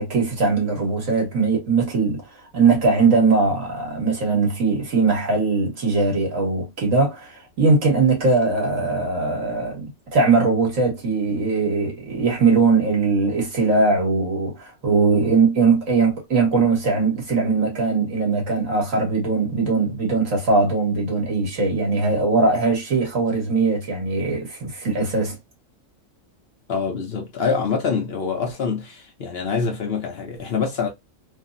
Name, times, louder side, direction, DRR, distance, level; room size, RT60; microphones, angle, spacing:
voice 1, 0.0-2.2 2.5-25.4, right 4 dB, 75° right, 1.7 m, -20 dB
voice 2, 26.7-30.9, left 5 dB, 55° left, 0.9 m, -25 dB
3.4 x 2.0 x 2.5 m
omnidirectional pair, 1.4 m